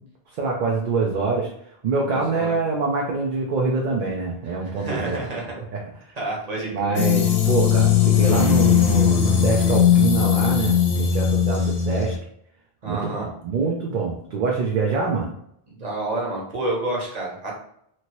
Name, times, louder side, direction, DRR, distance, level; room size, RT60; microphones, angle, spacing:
voice 1, 0.4-1.5 1.8-5.2 5.7-5.8 6.7-12.1 12.9-15.3, right 4 dB, 55° right, -2 dB, 0.6 m, -25 dB
voice 2, 2.1-2.6 4.5-5.4 6.2-7.0 11.5-11.7 12.8-13.3 15.7-17.5, right 2 dB, 40° right, -3 dB, 1.0 m, -29 dB
sound 1, 7.0-12.2, left 8 dB, 75° left, 0.8 m, -19 dB
2.9 x 2.6 x 2.9 m, 0.71 s
omnidirectional pair, 1.0 m